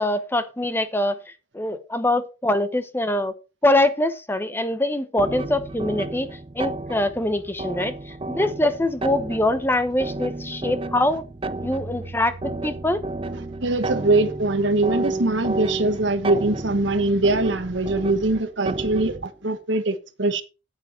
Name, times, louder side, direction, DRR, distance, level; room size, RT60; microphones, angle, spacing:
voice 1, 0.0-3.3 3.6-6.3 6.5-11.2 11.6-13.0, left 1 dB, 10° left, 0.9 m, -23 dB
sound 1, 5.2-19.3, right 2 dB, 30° right, 0.5 m, -32 dB
voice 2, 13.6-20.4, right 2 dB, 75° right, 1.3 m, -22 dB
9.1 x 9.0 x 4.3 m
head